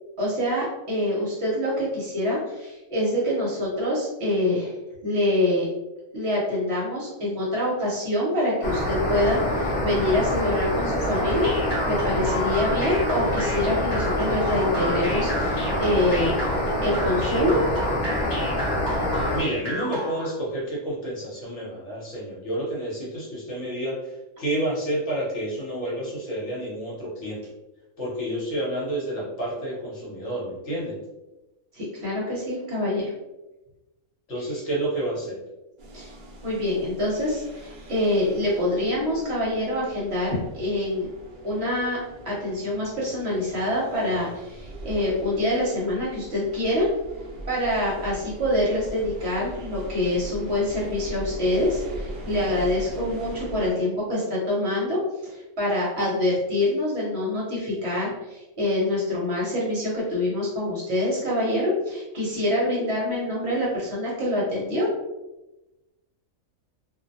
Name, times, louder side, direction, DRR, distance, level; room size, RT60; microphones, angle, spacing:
voice 1, 0.2-4.7 5.0-5.6 6.1-11.5 11.9-16.3 16.8-17.6 31.7-33.1 35.9-36.1 36.4-41.1 41.4-42.0 42.2-46.9 47.5-64.9, left 1 dB, 55° right, -5 dB, 0.9 m, -25 dB
sound 1, 8.6-19.4, left 1 dB, 45° left, 0.7 m, -26 dB
sound 2, 11.1-20.3, equal, 10° left, 0.9 m, -33 dB
voice 2, 19.3-24.0 24.4-27.4 28.0-31.0 34.3-35.4, right 1 dB, 60° left, -6 dB, 1.1 m, -29 dB
sound 3, 35.8-53.7, right 1 dB, 80° right, 0.4 m, -40 dB
2.5 x 2.1 x 2.6 m, 1.0 s
omnidirectional pair, 1.5 m